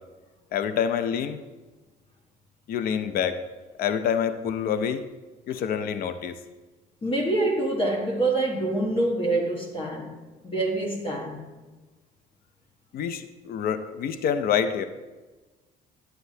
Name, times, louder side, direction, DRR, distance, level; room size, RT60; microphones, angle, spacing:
voice 1, 0.5-1.4 2.7-3.4 3.8-5.0 5.5-6.4 12.9-14.9, left 8 dB, 60° left, 0.6 m, -27 dB
voice 2, 7.0-11.5, right 2 dB, 30° left, 1.3 m, -26 dB
11.0 x 7.8 x 2.7 m
cardioid pair, 110°, 17 cm